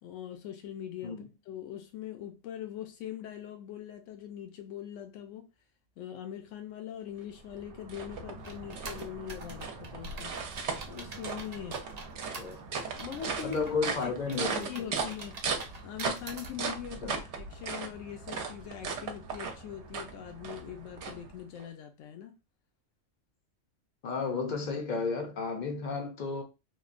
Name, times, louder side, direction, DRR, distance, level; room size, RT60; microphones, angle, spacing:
voice 1, 0.0-5.5 6.0-10.3 10.9-11.8 12.8-15.4 15.8-22.3, left 10 dB, 80° left, 0.9 m, -42 dB
sound 1, 7.2-21.7, right 5 dB, 70° right, 0.9 m, -38 dB
sound 2, 8.4-16.5, right 4 dB, 50° right, 0.5 m, -46 dB
voice 2, 13.4-14.9 17.0-17.2 24.0-26.4, left 4 dB, 55° left, 0.5 m, -33 dB
3.1 x 2.1 x 2.4 m
omnidirectional pair, 1.3 m